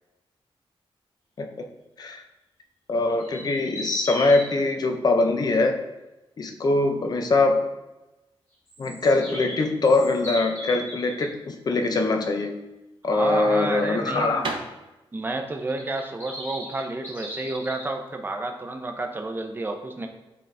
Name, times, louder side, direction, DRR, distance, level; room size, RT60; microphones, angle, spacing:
voice 1, 2.9-5.8 6.4-7.7 8.8-12.5 13.0-14.5, left 2 dB, 40° left, 4 dB, 0.7 m, -22 dB
sound 1, 3.2-4.5 8.7-11.3 15.6-17.8, equal, 20° left, 1.9 m, -37 dB
sound 2, 12.7-18.2, right 3 dB, 60° right, 0.8 m, -38 dB
voice 2, 13.1-14.5 15.1-20.1, right 2 dB, 20° right, 4 dB, 0.6 m, -30 dB
7.6 x 4.0 x 3.4 m, 1.0 s
wide cardioid pair, 165°, 10 cm